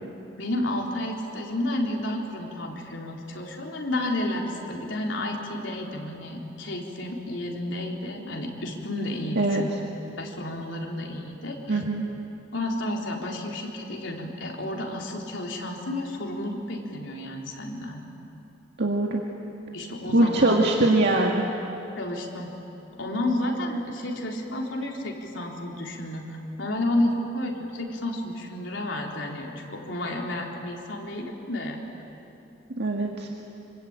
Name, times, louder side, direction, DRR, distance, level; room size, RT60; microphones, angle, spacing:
voice 1, 0.4-9.7 10.2-11.8 12.5-18.0 19.7-20.6 22.0-22.5 23.0-31.8, left 1 dB, 75° left, 0 dB, 3.9 m, -31 dB
voice 2, 11.7-12.0 18.8-19.2 20.1-21.5 32.8-33.3, right 2 dB, 60° right, 0 dB, 2.0 m, -22 dB
26.0 x 25.5 x 9.0 m, 2.9 s
head